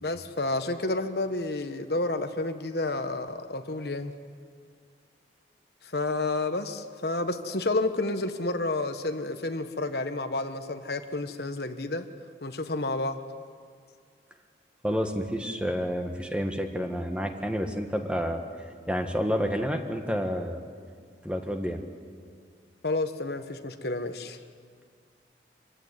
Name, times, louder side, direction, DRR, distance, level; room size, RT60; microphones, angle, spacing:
voice 1, 0.0-4.1 5.8-12.1 12.4-13.2 22.8-24.4, left 2 dB, 60° left, 8 dB, 1.3 m, -30 dB
voice 2, 14.8-18.4 18.9-20.6 21.2-21.8, equal, 5° right, 4 dB, 1.6 m, -29 dB
26.0 x 16.0 x 9.6 m, 2.1 s
head